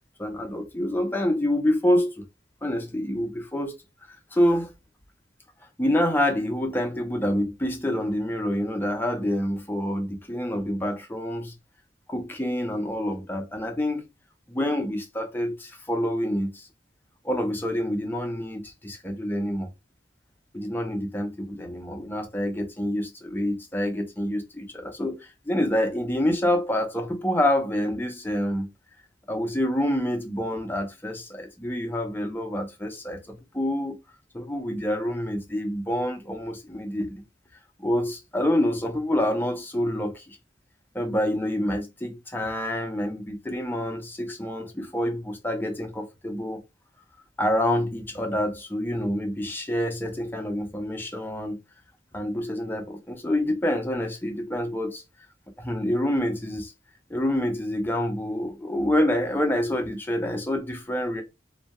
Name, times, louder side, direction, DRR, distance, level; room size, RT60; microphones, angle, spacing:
voice 1, 0.2-2.1 2.6-3.7 4.3-4.7 5.8-11.5 12.1-14.1 14.5-16.7 17.2-19.7 20.5-28.7 29.3-34.0 34.3-37.2 37.8-40.4 40.9-46.6 47.4-51.6 52.1-55.0 55.6-56.7 57.1-61.2, left 1 dB, 10° left, 0.4 m, -27 dB
2.2 x 2.1 x 2.8 m
head